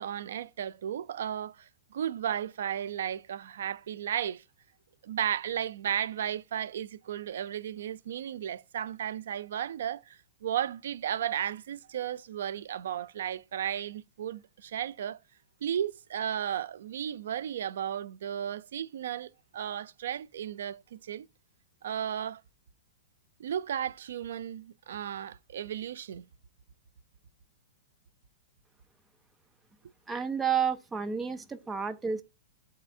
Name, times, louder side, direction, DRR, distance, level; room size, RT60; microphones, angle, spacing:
voice 1, 0.0-4.4 5.0-15.2 15.6-21.3 21.8-22.4 23.4-26.2, right 9 dB, 70° right, 0.4 m, -34 dB
voice 2, 30.1-32.2, right 7 dB, 10° right, 0.4 m, -30 dB
12.0 x 4.1 x 2.6 m
supercardioid pair, 170°, 0 cm